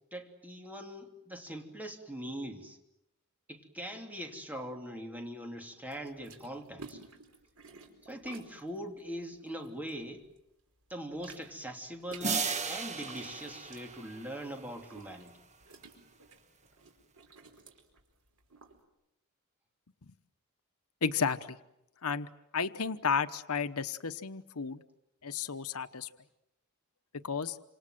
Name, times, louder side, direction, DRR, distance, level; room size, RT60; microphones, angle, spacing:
voice 1, 0.1-2.8 3.5-7.0 8.0-10.3 10.9-12.4 12.7-15.3, equal, 10° right, 3 dB, 3.1 m, -42 dB
sound 1, 5.9-10.4 10.7-18.8, right 4 dB, 90° right, 4.6 m, -54 dB
sound 2, 12.2-15.0, right 5 dB, 35° right, 1.6 m, -36 dB
voice 2, 21.0-21.6 22.0-22.3 22.5-24.8 25.2-26.1 27.1-27.6, left 6 dB, 80° left, 11 dB, 1.0 m, -33 dB
28.0 x 27.0 x 7.8 m, 0.87 s
head